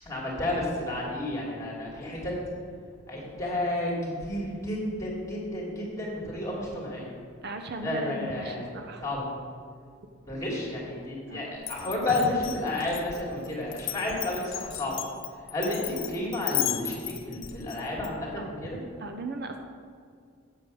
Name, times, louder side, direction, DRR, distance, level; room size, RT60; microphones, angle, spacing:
voice 1, 0.0-2.3 3.1-7.1 7.8-9.3 10.2-14.9 15.5-18.8, left 1 dB, 15° left, -4 dB, 2.7 m, -31 dB
voice 2, 7.4-9.0 11.3-11.4 12.1-12.3 18.4-18.5 19.0-19.6, right 2 dB, 55° right, 5 dB, 0.7 m, -37 dB
Glass, 11.6-18.1, left 14 dB, 65° left, 0.7 m, -35 dB
8.4 x 7.5 x 6.3 m, 2.1 s
head